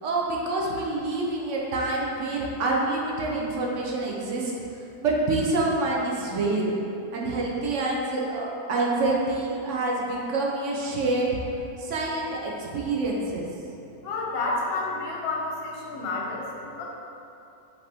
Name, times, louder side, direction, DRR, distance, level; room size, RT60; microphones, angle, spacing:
voice 1, 0.0-4.5 5.0-6.7 7.1-11.4 11.8-13.5, right 2 dB, 65° right, -2 dB, 0.8 m, -27 dB
voice 2, 14.0-16.9, left 3 dB, 55° left, -3 dB, 0.7 m, -30 dB
5.0 x 2.9 x 3.4 m, 2.8 s
omnidirectional pair, 1.6 m